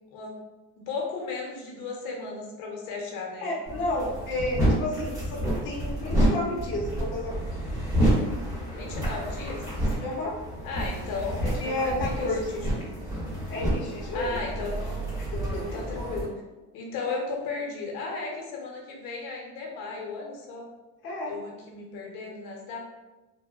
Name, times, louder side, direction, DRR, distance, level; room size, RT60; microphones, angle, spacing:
voice 1, 0.8-3.5 8.7-9.6 10.6-12.9 14.1-14.7 15.6-16.3 16.7-20.7 21.3-22.8, left 4 dB, 75° left, -1 dB, 0.7 m, -35 dB
voice 2, 3.4-7.4 10.0-10.4 11.4-12.5 13.5-14.4 15.2-15.7 21.0-21.4, left 1 dB, 35° left, -4 dB, 0.6 m, -31 dB
sound 1, 3.6-16.2, equal, 10° right, 1.1 m, -29 dB
2.8 x 2.0 x 2.3 m, 1.1 s
cardioid pair, 150°, 34 cm